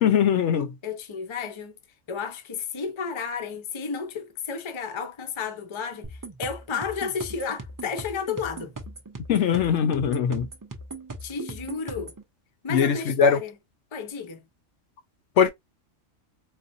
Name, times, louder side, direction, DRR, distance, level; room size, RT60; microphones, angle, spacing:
voice 1, 0.0-0.7 9.3-10.5 12.7-13.4 15.4-15.5, left 7 dB, 70° left, 0.9 m, -21 dB
voice 2, 0.8-1.8 2.1-8.8 11.2-12.1 12.6-13.6 13.9-14.5, left 6 dB, 35° left, 0.5 m, -32 dB
sound 1, 6.0-12.2, right 2 dB, 25° right, 0.5 m, -39 dB
4.2 x 2.2 x 2.6 m
omnidirectional pair, 1.3 m